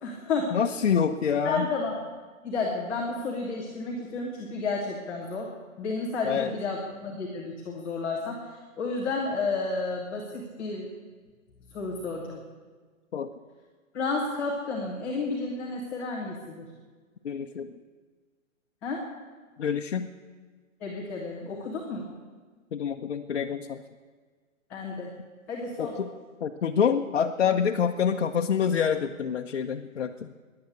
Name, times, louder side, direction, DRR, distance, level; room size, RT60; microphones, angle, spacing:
voice 1, 0.0-0.5 1.4-2.0 2.4-5.5 5.8-10.9 11.7-12.4 13.9-16.6 18.8-19.0 20.8-22.1 24.7-25.1 25.5-26.0, left 3 dB, 5° left, -8 dB, 0.6 m, -31 dB
voice 2, 0.5-1.7 6.2-6.5 13.1-13.3 17.2-17.7 19.6-20.1 22.7-23.8 25.8-26.1 26.4-30.3, left 7 dB, 50° left, 1 dB, 0.9 m, -26 dB
16.0 x 10.5 x 8.4 m, 1.5 s
hypercardioid pair, 160°, 42 cm